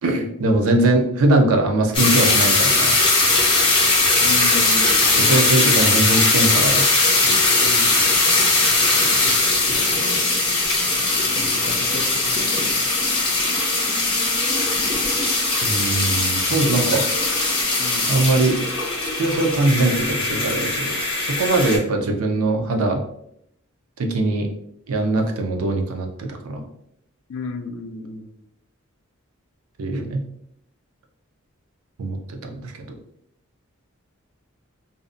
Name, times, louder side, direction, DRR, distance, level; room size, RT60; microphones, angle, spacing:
voice 1, 0.0-2.9 5.2-6.9 15.6-17.0 18.1-18.6 19.0-23.0 24.0-24.5 24.9-26.6 29.8-30.2 32.0-32.2 32.4-33.0, right 2 dB, 85° right, 4 dB, 0.5 m, -21 dB
sound 1, 1.9-21.8, left 3 dB, 25° left, 0.6 m, -19 dB
voice 2, 4.2-5.7 7.6-8.1 11.3-12.9 16.8-17.0 17.8-18.1 27.3-28.3, left 3 dB, 65° left, 6 dB, 0.4 m, -33 dB
2.6 x 2.1 x 2.5 m, 0.74 s
head